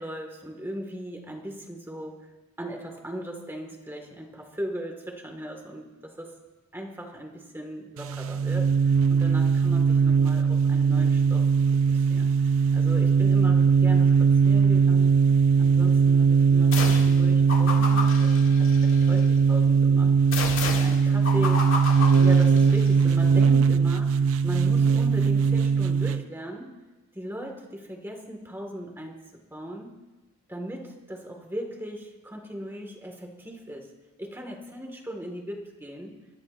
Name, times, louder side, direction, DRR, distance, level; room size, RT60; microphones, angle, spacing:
voice 1, 0.0-2.3 2.6-6.4 6.7-11.5 11.9-15.2 15.6-21.7 22.2-26.7 27.1-29.9 30.5-33.9 34.2-36.2, equal, 10° right, 2 dB, 1.8 m, -38 dB
sound 1, 8.0-26.2, right 5 dB, 65° right, 0.4 m, -20 dB
sound 2, 16.7-17.2 17.5-19.2 20.3-22.9, left 4 dB, 60° left, 2.3 m, -32 dB
29.5 x 13.5 x 2.6 m, 1.1 s
head